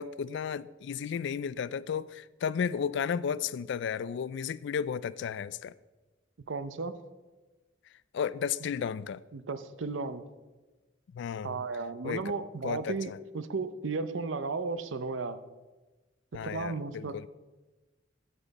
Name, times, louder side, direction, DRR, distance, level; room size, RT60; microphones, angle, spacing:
voice 1, 0.0-5.7 8.1-9.2 11.1-11.6 12.0-12.3 12.6-13.2 16.3-17.3, left 7 dB, 65° left, 0.3 m, -33 dB
voice 2, 6.5-6.9 9.3-10.2 11.4-15.4 16.4-17.3, right 4 dB, 85° right, 0.6 m, -34 dB
9.2 x 8.8 x 4.1 m
head